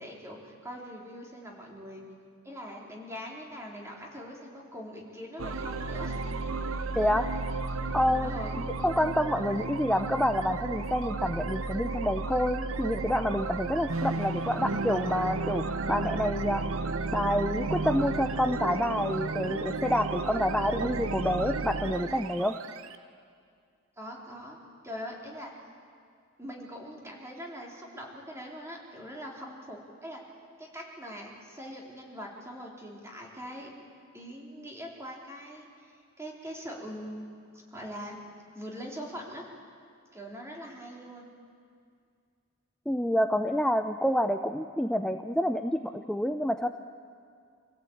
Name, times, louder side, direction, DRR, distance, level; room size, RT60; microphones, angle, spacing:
voice 1, 0.0-2.0 2.4-6.2 8.2-8.7 24.0-24.6 24.8-25.5 26.4-30.2 30.6-33.7 34.1-37.2 37.7-38.2 38.5-39.5 40.1-41.3, equal, 15° right, -2 dB, 3.6 m, -42 dB
sound 1, 5.4-22.9, right 3 dB, 85° right, 0.9 m, -33 dB
voice 2, 7.0-7.3 7.9-8.3 8.8-16.6 17.1-22.6 42.9-46.7, equal, 5° left, 6 dB, 0.6 m, -28 dB
25.5 x 16.0 x 8.7 m, 2.2 s
head